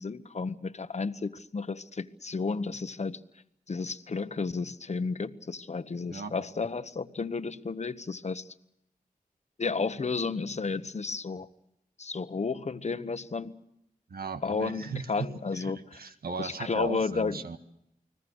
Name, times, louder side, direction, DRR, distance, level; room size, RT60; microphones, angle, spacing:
voice 1, 0.0-3.2 3.7-8.5 9.6-11.5 12.0-13.5 14.4-16.0 16.4-17.4, left 4 dB, 50° left, 12 dB, 1.2 m, -32 dB
voice 2, 14.1-15.3 15.6-17.6, right 5 dB, 85° right, 8 dB, 1.7 m, -37 dB
30.0 x 20.5 x 6.4 m, 0.80 s
wide cardioid pair, 75°, 15 cm